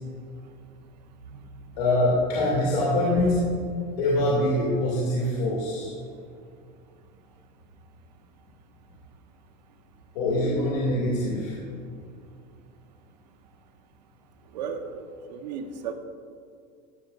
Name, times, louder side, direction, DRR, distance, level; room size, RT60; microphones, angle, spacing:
voice 1, 1.8-3.4 4.0-5.9 10.1-11.6, left 1 dB, 85° left, -5 dB, 2.5 m, -24 dB
voice 2, 14.5-14.9 15.3-15.9, right 6 dB, 90° right, 6 dB, 1.1 m, -33 dB
15.0 x 8.7 x 2.5 m, 2.4 s
supercardioid pair, 130°, 21 cm